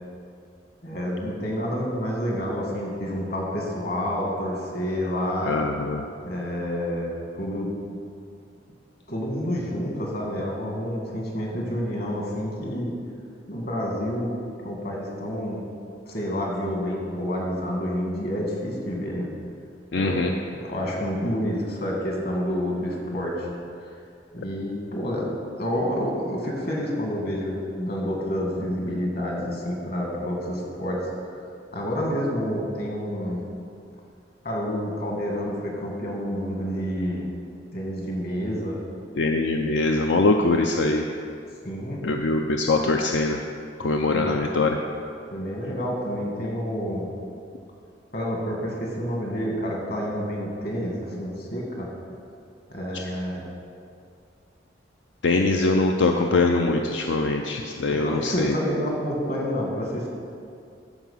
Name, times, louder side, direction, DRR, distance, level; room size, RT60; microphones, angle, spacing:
voice 1, 0.8-5.6 6.2-7.7 9.1-12.9 13.5-14.3 14.6-15.6 16.1-19.3 19.9-20.2 20.5-23.5 24.3-25.3 25.6-31.4 31.7-33.4 34.4-37.3 37.7-38.8 41.6-42.1 44.1-44.4 45.3-47.1 48.1-51.9 52.7-53.4 57.9-60.1, equal, 55° left, -1 dB, 2.0 m, -29 dB
voice 2, 5.4-6.0 19.9-20.3 39.2-41.0 42.0-43.4 43.8-44.8 52.9-53.0 55.2-58.5, left 3 dB, 85° left, 3 dB, 0.5 m, -22 dB
13.5 x 4.9 x 5.6 m, 2.4 s
head